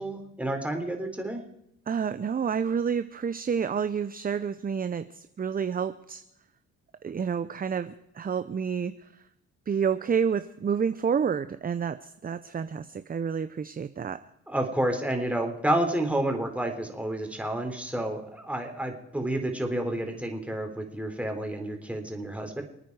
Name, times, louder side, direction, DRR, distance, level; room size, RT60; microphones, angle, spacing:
voice 1, 0.0-1.4 14.5-22.6, right 1 dB, 5° right, 3 dB, 3.8 m, -30 dB
voice 2, 1.9-6.2 7.0-9.2 9.7-14.2, right 7 dB, 30° right, 11 dB, 0.7 m, -29 dB
27.5 x 9.4 x 4.8 m, 0.81 s
cardioid pair, 90°, 30 cm